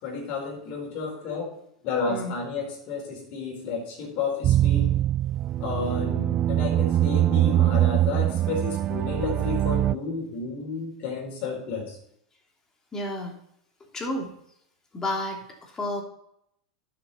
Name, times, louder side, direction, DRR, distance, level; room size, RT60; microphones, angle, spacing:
voice 1, 0.0-1.5 1.8-4.9 5.6-12.0, left 4 dB, 50° left, -1 dB, 4.6 m, -32 dB
sound 1, 4.4-9.9, right 13 dB, 35° right, 0.3 m, -23 dB
voice 2, 12.9-13.4 13.8-14.3 14.9-16.0, left 1 dB, 20° left, 1 dB, 2.8 m, -31 dB
11.5 x 6.9 x 4.2 m, 0.72 s
hypercardioid pair, 100°, 3 cm